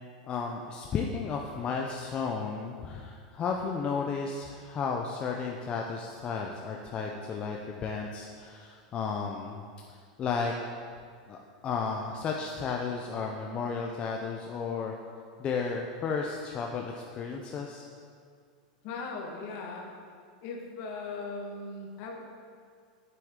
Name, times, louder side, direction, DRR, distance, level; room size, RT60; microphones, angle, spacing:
voice 1, 0.3-9.6 10.2-10.5 11.3-14.9 15.4-17.9, left 5 dB, 25° left, 0 dB, 0.5 m, -33 dB
voice 2, 18.8-19.9 20.4-22.2, left 3 dB, 45° left, 0 dB, 1.4 m, -38 dB
7.9 x 7.7 x 3.6 m, 2.1 s
supercardioid pair, 155°, 4 cm